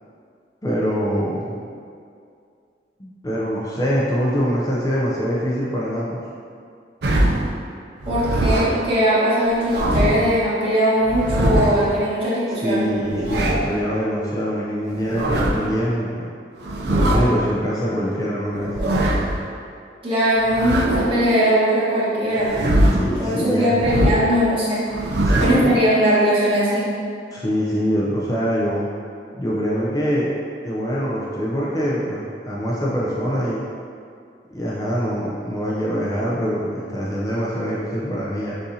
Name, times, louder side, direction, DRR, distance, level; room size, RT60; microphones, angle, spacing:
voice 1, 0.6-1.5 3.0-6.2 12.5-16.3 16.9-18.7 22.9-23.8 25.2-25.7 27.3-28.9 29.4-30.3 30.6-33.6 34.5-38.5, equal, 20° left, -6 dB, 0.5 m, -24 dB
sound 1, 7.0-7.5 8.0-8.9 9.5-10.3 11.0-11.9 12.9-13.8 14.9-15.7 16.6-17.4 18.5-19.4 20.4-21.3 22.3-23.2 23.8-24.4 24.9-25.7, right 1 dB, 65° right, 0.5 m, -21 dB
voice 2, 8.1-12.8 20.0-22.6 23.2-24.9 25.4-26.9, equal, 30° right, -10 dB, 1.3 m, -20 dB
6.7 x 2.6 x 2.7 m, 2.3 s
head